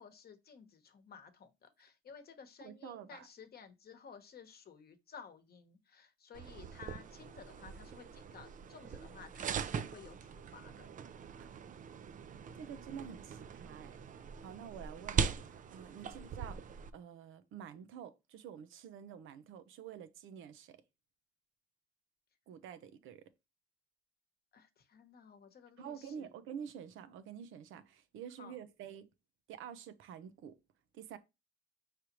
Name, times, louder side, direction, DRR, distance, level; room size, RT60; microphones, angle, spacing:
voice 1, 0.0-10.9 16.0-16.1 24.5-26.3 28.4-28.5, left 6 dB, 50° left, 1.0 m, -55 dB
voice 2, 2.6-3.3 11.4-11.5 12.6-14.0 14.4-20.8 22.5-23.2 25.8-29.1 29.5-30.6 30.9-31.2, right 8 dB, 85° right, 0.6 m, -48 dB
sound 1, 6.3-16.9, right 7 dB, 40° right, 0.4 m, -41 dB
4.9 x 3.3 x 2.9 m
cardioid pair, 90°, 20 cm